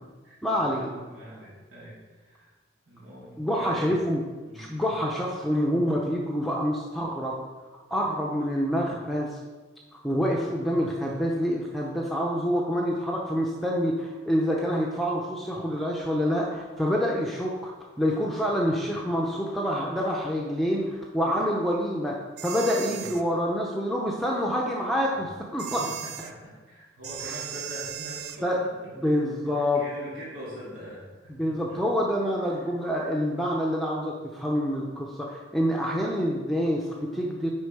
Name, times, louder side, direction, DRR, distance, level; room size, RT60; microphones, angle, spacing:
voice 1, 0.4-1.0 3.4-4.2 4.5-7.4 7.9-9.4 9.9-22.2 22.4-25.8 28.4-28.6 29.0-29.8 31.3-37.5, equal, ahead, -3 dB, 0.6 m, -27 dB
voice 2, 1.1-2.5 2.9-3.9 4.4-4.7 22.8-23.0 25.7-31.8 32.6-32.7, equal, 85° right, -9 dB, 2.2 m, -43 dB
sound 1, 22.4-23.2 25.6-26.3 27.0-28.4, right 10 dB, 55° right, 0.4 m, -37 dB
9.7 x 3.7 x 4.8 m, 1.3 s
head